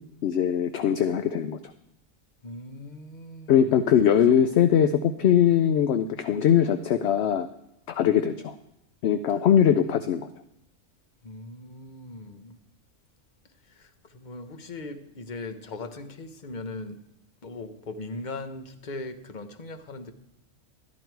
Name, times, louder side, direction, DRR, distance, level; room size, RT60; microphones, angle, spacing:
voice 1, 0.2-1.6 3.5-7.5 7.9-8.6 9.0-10.3, left 9 dB, 65° left, 10 dB, 0.8 m, -21 dB
voice 2, 2.4-3.8 4.1-4.5 9.3-9.5 11.2-12.6 13.6-17.0 17.4-20.1, left 2 dB, 40° left, 8 dB, 1.0 m, -39 dB
13.0 x 11.0 x 4.6 m, 0.85 s
omnidirectional pair, 1.4 m